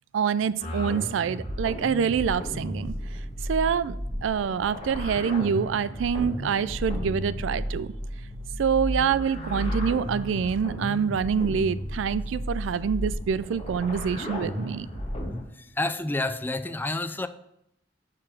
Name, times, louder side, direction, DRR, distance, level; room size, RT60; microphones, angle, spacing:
voice 1, 0.1-2.9 3.5-4.0 4.2-7.9 8.6-14.9, right 7 dB, 75° right, 16 dB, 0.3 m, -26 dB
sound 1, 0.6-15.4, equal, 30° left, 1.6 m, -33 dB
voice 2, 15.5-17.3, left 2 dB, 10° left, 10 dB, 0.3 m, -29 dB
6.1 x 4.4 x 6.1 m, 0.78 s
head